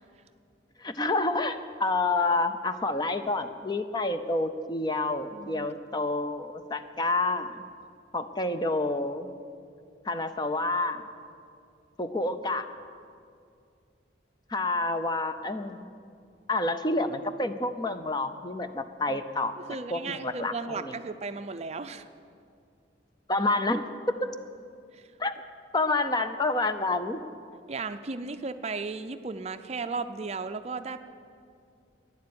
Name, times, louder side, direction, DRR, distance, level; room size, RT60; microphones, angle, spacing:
voice 1, 0.8-7.6 8.1-9.3 10.0-11.1 12.0-12.7 14.5-15.9 16.5-19.6 19.9-20.9 23.3-24.3 25.2-25.3 25.7-27.2, left 2 dB, 25° left, 9 dB, 0.6 m, -28 dB
voice 2, 5.3-5.7 19.1-19.2 19.7-22.1 24.9-25.1 27.7-31.0, right 4 dB, 35° right, 10 dB, 0.5 m, -35 dB
12.0 x 10.5 x 9.5 m, 2.4 s
head